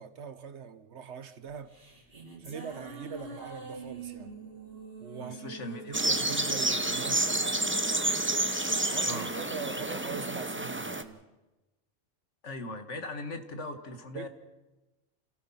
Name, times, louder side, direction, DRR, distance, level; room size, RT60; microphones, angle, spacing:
voice 1, 0.0-1.8 2.4-4.3 5.0-5.6 5.9-7.9 8.9-11.2 14.1-14.3, right 6 dB, 65° right, 1.4 m, -42 dB
sound 1, 1.6-8.0, right 3 dB, 50° right, 3.4 m, -46 dB
voice 2, 5.2-6.2 9.0-9.3 12.4-14.3, left 2 dB, 75° left, 2.1 m, -39 dB
sound 2, 5.9-11.0, right 2 dB, 10° right, 0.8 m, -29 dB
28.5 x 16.5 x 5.8 m
omnidirectional pair, 1.3 m